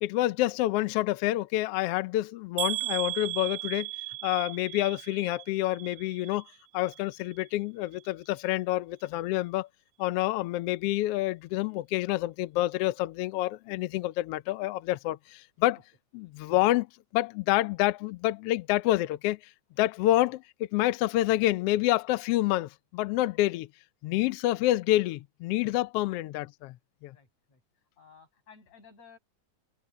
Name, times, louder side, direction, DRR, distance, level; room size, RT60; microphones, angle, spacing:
voice 1, 0.0-3.9 4.2-6.5 6.7-9.7 10.0-15.8 16.1-16.9 17.1-19.4 19.8-20.4 20.7-23.7 24.0-26.8 27.0-27.2, left 16 dB, 80° left, 1.3 m, -28 dB
sound 1, 2.6-6.6 6.9-7.5 7.9-8.1 8.4-8.5, right 22 dB, 65° right, 3.0 m, -36 dB
voice 2, 27.1-27.6 28.0-29.2, left 5 dB, 60° left, 8.5 m, -55 dB
omnidirectional pair, 3.4 m